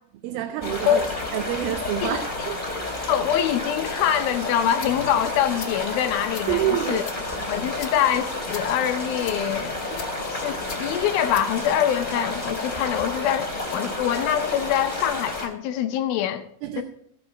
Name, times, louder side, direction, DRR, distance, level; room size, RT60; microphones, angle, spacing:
voice 1, 0.2-1.0 1.3-2.6 6.5-7.1 16.6-16.8, right 12 dB, 85° right, 2.7 m, -27 dB
sound 1, 0.6-15.5, left 2 dB, 15° left, 2.4 m, -31 dB
voice 2, 2.0-2.5 3.1-7.0 7.5-9.7 10.3-16.4 16.8-16.9, left 10 dB, 80° left, 2.5 m, -24 dB
sound 2, 3.8-6.2 6.7-9.6 10.2-13.0 13.6-15.4, equal, ahead, 2.1 m, -46 dB
sound 3, 4.5-12.5, left 6 dB, 50° left, 1.6 m, -44 dB
16.0 x 6.2 x 4.9 m
omnidirectional pair, 4.3 m